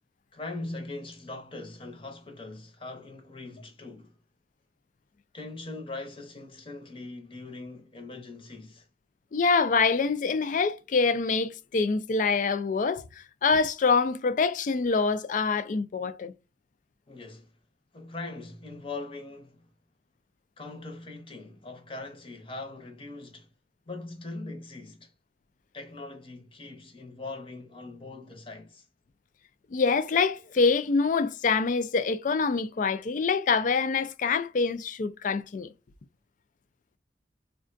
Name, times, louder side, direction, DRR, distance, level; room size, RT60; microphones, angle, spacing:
voice 1, 0.3-4.2 5.3-8.9 17.1-17.5 17.9-19.7 20.6-23.5 23.9-25.1 25.7-28.9, left 2 dB, 30° left, 0.8 m, -41 dB
voice 2, 9.3-16.3 29.7-35.7, left 4 dB, 45° left, 0.3 m, -25 dB
3.6 x 2.2 x 2.5 m
head